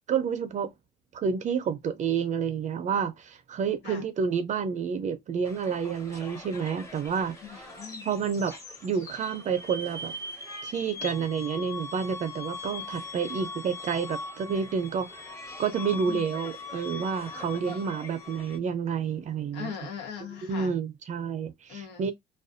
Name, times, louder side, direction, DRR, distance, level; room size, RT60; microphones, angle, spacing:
voice 1, 0.1-0.7 1.1-7.7 8.0-8.6 8.8-10.1 10.6-19.7 20.5-22.1, right 6 dB, 45° right, 0.5 m, -29 dB
sound 1, 5.4-18.6, left 3 dB, 15° left, 1.0 m, -41 dB
voice 2, 7.4-8.1 16.1-16.4 17.6-18.0 19.5-20.7 21.7-22.0, left 7 dB, 85° left, 1.2 m, -40 dB
2.4 x 2.2 x 2.5 m
cardioid pair, 110°, 17 cm